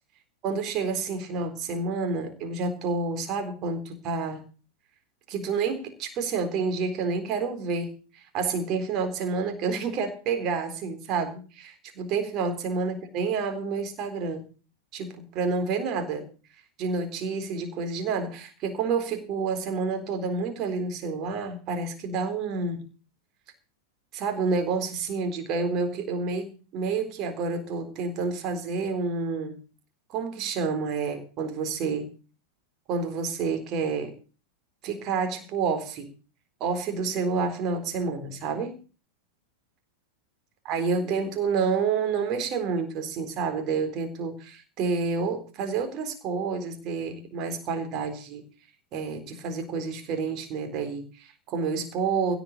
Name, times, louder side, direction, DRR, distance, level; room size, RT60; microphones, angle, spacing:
voice 1, 0.4-4.4 5.3-14.5 14.9-16.3 16.8-22.9 24.1-29.6 30.1-32.1 32.9-34.1 34.8-36.1 36.6-38.8 40.6-48.4 48.9-52.4, right 4 dB, 35° right, 6 dB, 3.8 m, -29 dB
17.0 x 6.2 x 8.2 m, 0.36 s
figure-of-eight pair, 90°, 0 cm